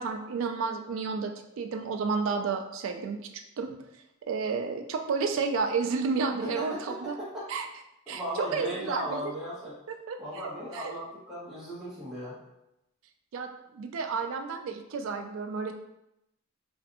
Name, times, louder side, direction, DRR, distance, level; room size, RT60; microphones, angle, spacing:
voice 1, 0.0-3.7 4.2-7.2 7.5-7.7 8.1-9.3 9.9-10.9 13.3-13.5 13.7-15.7, right 5 dB, 70° right, 6 dB, 0.3 m, -31 dB
voice 2, 6.4-7.4 8.1-9.8 10.2-12.4, equal, 5° right, -11 dB, 0.8 m, -37 dB
2.5 x 2.3 x 2.6 m, 0.86 s
head